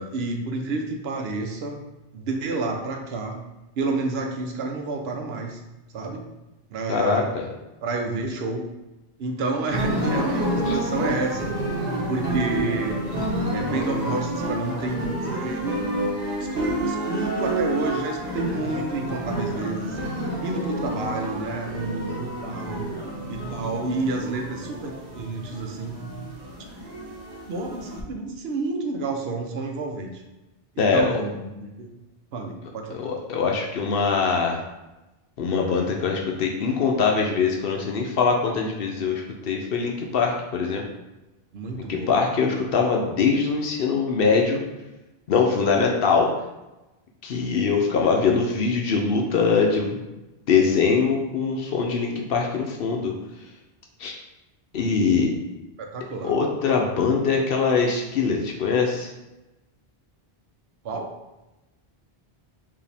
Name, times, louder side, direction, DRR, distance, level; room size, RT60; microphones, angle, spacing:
voice 1, 0.0-1.8 2.1-3.4 3.8-5.6 5.9-6.2 6.7-7.3 7.8-8.7 9.2-11.6 12.1-13.0 13.5-15.8 16.5-20.0 20.4-22.9 23.3-26.0 27.5-30.2 30.8-31.9 32.3-33.0 41.5-42.5 55.8-56.4 60.8-61.1, right 3 dB, 80° right, 3 dB, 0.9 m, -29 dB
voice 2, 6.9-7.5 10.7-10.8 30.8-31.1 32.9-34.6 35.4-40.8 41.8-44.6 45.3-46.3 47.2-50.0 50.5-53.1 54.0-54.2 54.7-55.3 56.2-59.1, left 5 dB, 70° left, 1 dB, 0.8 m, -22 dB
sound 1, 9.7-28.0, right 1 dB, 45° right, 1.1 m, -29 dB
4.8 x 2.7 x 3.3 m, 1.0 s
omnidirectional pair, 1.0 m